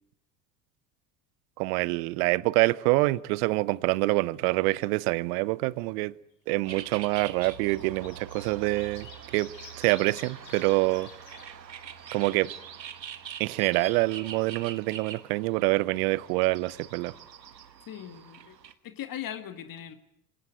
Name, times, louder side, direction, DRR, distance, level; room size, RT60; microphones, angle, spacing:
voice 1, 1.6-6.1 6.5-11.1 12.1-12.5 13.4-17.1, right 22 dB, 60° right, 0.9 m, -26 dB
sound 1, 4.0-4.7 5.0-5.1 6.2-6.3 7.2-11.5 11.9-12.0 12.3-13.3 17.2-17.3 17.5-17.6, left 6 dB, 80° left, 6.1 m, -50 dB
sound 2, 6.6-18.7, right 8 dB, 90° right, 1.4 m, -44 dB
voice 2, 17.9-18.6 18.8-19.9, left 10 dB, 40° left, 2.1 m, -39 dB
24.5 x 18.0 x 9.4 m
hypercardioid pair, 70°, 50 cm